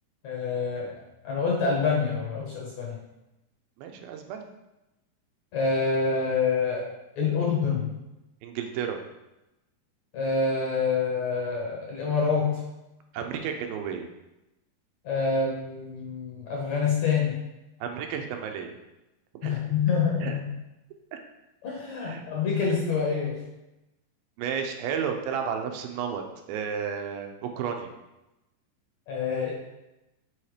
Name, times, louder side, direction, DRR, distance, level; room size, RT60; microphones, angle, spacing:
voice 1, 0.2-0.9 1.2-3.0 5.5-6.8 7.2-7.9 10.1-12.6 15.0-17.4 19.4-20.4 21.6-23.4 29.1-29.5, left 5 dB, 65° left, -3 dB, 1.9 m, -26 dB
voice 2, 3.8-4.5 7.2-7.3 8.4-9.0 13.1-14.1 17.8-18.8 19.4-19.7 20.2-20.4 21.1-21.2 22.1-22.2 24.4-27.9, right 7 dB, 85° right, 4 dB, 2.5 m, -32 dB
6.3 x 4.3 x 4.9 m, 0.95 s
omnidirectional pair, 4.2 m